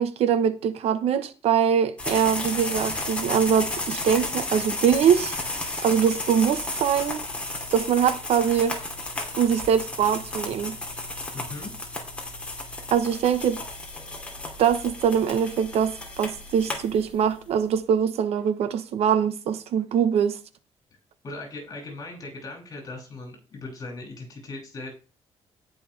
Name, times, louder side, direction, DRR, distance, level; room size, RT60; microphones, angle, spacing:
voice 1, 0.0-5.4 5.8-7.2 7.7-8.8 9.4-10.8 12.9-13.6 14.6-20.4, right 8 dB, 65° right, 1.0 m, -23 dB
sound 1, 2.0-17.4, left 2 dB, 10° left, 2.6 m, -33 dB
voice 2, 11.3-11.7 21.2-24.9, left 2 dB, 35° left, 6.6 m, -38 dB
17.5 x 6.1 x 3.3 m
cardioid pair, 165°, 11 cm